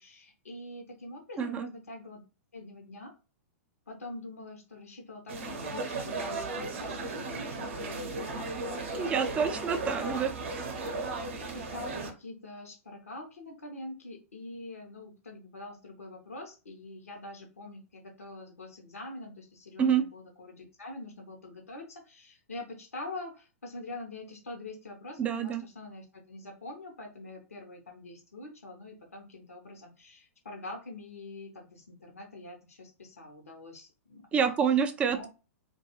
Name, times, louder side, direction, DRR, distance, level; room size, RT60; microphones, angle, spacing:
voice 1, 0.0-2.2 2.5-3.1 3.9-9.7 10.0-10.2 11.4-34.5 35.0-35.3, left 2 dB, 75° left, 2 dB, 0.7 m, -45 dB
voice 2, 1.4-1.7 9.0-10.3 19.8-20.0 25.2-25.6 34.3-35.3, right 7 dB, 15° right, 8 dB, 0.3 m, -27 dB
sound 1, 5.3-12.1, right 3 dB, 55° right, 0.6 m, -36 dB
2.2 x 2.2 x 2.8 m, 0.32 s
figure-of-eight pair, 105°, 8 cm